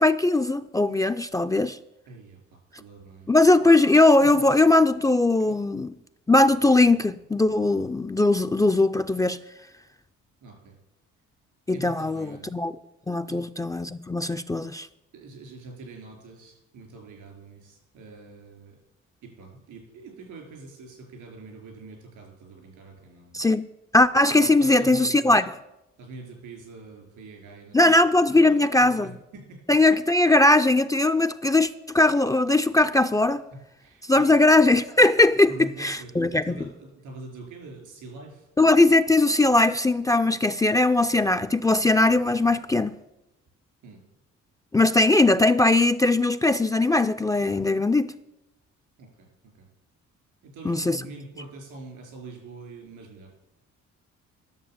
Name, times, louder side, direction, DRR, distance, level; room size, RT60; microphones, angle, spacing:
voice 1, 0.0-1.8 3.3-5.9 6.3-9.4 11.7-12.7 13.1-14.9 23.3-23.7 23.9-25.4 27.7-29.1 29.7-31.7 31.9-33.4 34.1-35.5 35.8-36.5 38.6-42.9 44.7-48.1 50.7-51.0, left 2 dB, 10° left, 0.4 m, -20 dB
voice 2, 2.1-2.4 2.7-3.7 4.2-4.3 5.4-5.5 10.4-10.7 11.7-12.5 13.3-13.4 15.1-18.8 19.2-23.4 24.4-25.4 26.0-28.0 28.2-29.6 33.5-34.3 35.5-38.5 43.8-44.0 49.0-49.7 50.4-53.3, right 3 dB, 85° right, 4.6 m, -44 dB
11.0 x 6.8 x 7.2 m
cardioid pair, 90°, 30 cm